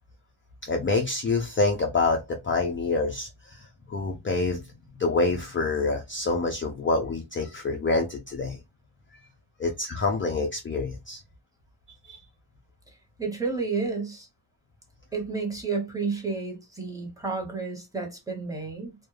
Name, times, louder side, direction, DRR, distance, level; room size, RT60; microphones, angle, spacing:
voice 1, 0.6-8.6 9.6-11.2 12.0-12.2, left 3 dB, 25° left, 0.4 m, -27 dB
voice 2, 13.2-14.3 15.1-19.0, right 4 dB, 5° right, 0.9 m, -31 dB
2.3 x 2.0 x 3.1 m
wide cardioid pair, 95°, 49 cm